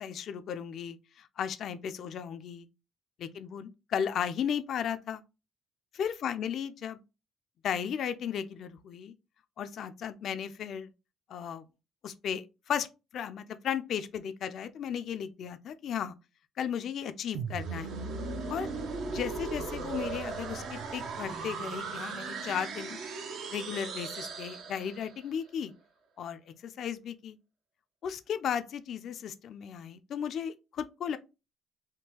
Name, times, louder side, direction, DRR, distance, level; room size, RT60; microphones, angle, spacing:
voice 1, 0.0-2.7 3.2-5.2 6.0-7.0 7.6-9.1 9.6-10.9 11.3-11.6 12.0-12.9 13.1-16.1 16.6-17.9 18.5-18.7 19.1-23.0 23.5-25.7 26.2-27.4 28.0-31.2, left 8 dB, 65° left, 0.3 m, -35 dB
sound 1, 17.4-25.2, right 4 dB, 70° right, 0.6 m, -37 dB
3.6 x 2.3 x 2.8 m
cardioid pair, 100°, 0 cm